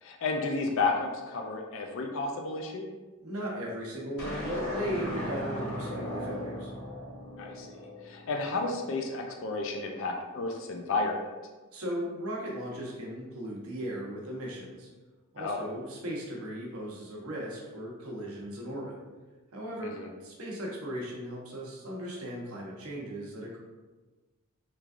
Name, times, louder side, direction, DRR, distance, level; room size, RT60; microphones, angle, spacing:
voice 1, 0.0-2.9 7.4-7.8 8.0-11.2 15.4-15.6 19.8-20.1, left 3 dB, 60° left, 2 dB, 0.4 m, -32 dB
voice 2, 3.2-6.7 11.7-14.9 15.3-19.0 19.5-23.6, equal, 75° right, -3 dB, 0.9 m, -37 dB
sound 1, 4.2-8.6, left 1 dB, 85° left, 1.3 m, -37 dB
3.5 x 3.2 x 2.4 m, 1.2 s
head